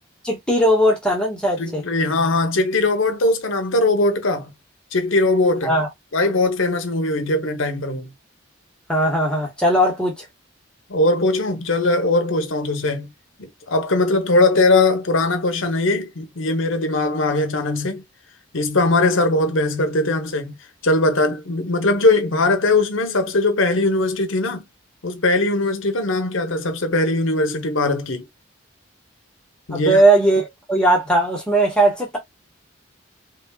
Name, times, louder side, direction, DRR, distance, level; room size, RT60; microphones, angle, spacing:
voice 1, 0.2-1.8 5.6-5.9 8.9-10.2 29.7-32.2, right 1 dB, 5° left, 1.4 m, -18 dB
voice 2, 1.6-4.5 4.9-5.7 6.1-8.1 10.9-13.1 13.4-18.0 18.5-20.6 20.8-24.6 25.0-28.3 29.7-30.0, left 2 dB, 75° left, 0.9 m, -20 dB
3.6 x 3.4 x 2.3 m
head